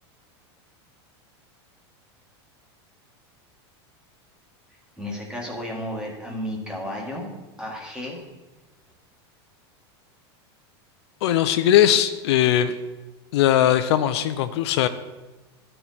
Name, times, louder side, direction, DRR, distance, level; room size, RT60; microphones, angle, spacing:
voice 1, 5.0-7.3 7.6-8.2, equal, 5° right, -2 dB, 1.7 m, -33 dB
voice 2, 11.2-12.7 13.3-14.9, left 11 dB, 75° left, 10 dB, 0.5 m, -19 dB
12.5 x 4.4 x 4.1 m, 1.1 s
supercardioid pair, 140°, 14 cm